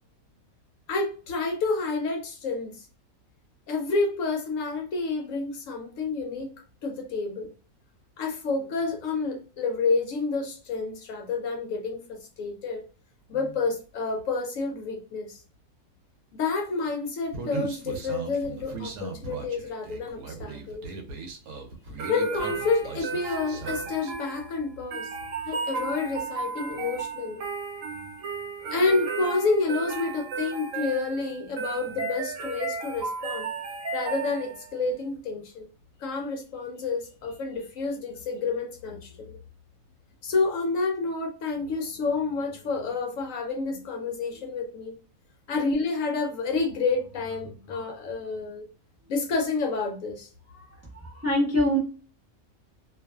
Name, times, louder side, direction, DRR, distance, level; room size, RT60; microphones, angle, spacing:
voice 1, 0.9-2.8 3.7-6.5 6.8-7.5 8.2-12.8 13.3-15.4 16.4-20.9 22.1-25.1 25.5-27.4 27.9-28.0 28.7-33.5 33.9-35.7 36.0-39.4 40.2-44.9 45.5-48.7 49.1-50.3, left 3 dB, 70° left, 2 dB, 0.9 m, -29 dB
Human voice, 17.3-24.1, right 4 dB, 90° right, 1.1 m, -38 dB
sound 1, 22.0-34.8, right 5 dB, 65° right, 1.0 m, -34 dB
voice 2, 50.9-51.8, equal, 15° right, -5 dB, 0.7 m, -24 dB
2.5 x 2.4 x 2.2 m, 0.36 s
omnidirectional pair, 1.5 m